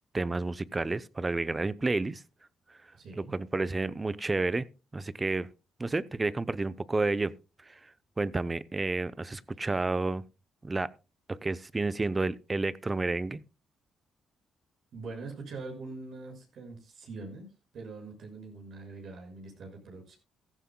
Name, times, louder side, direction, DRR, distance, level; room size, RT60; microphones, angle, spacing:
voice 1, 0.1-2.2 3.2-4.7 4.9-5.5 5.8-7.3 7.7-7.8 8.2-10.2 10.6-10.9 11.3-13.4, right 3 dB, 20° right, 0.6 m, -30 dB
voice 2, 2.9-3.3 14.9-20.2, right 3 dB, 65° right, 6.0 m, -43 dB
15.5 x 14.0 x 2.2 m
cardioid pair, 90°, 0 cm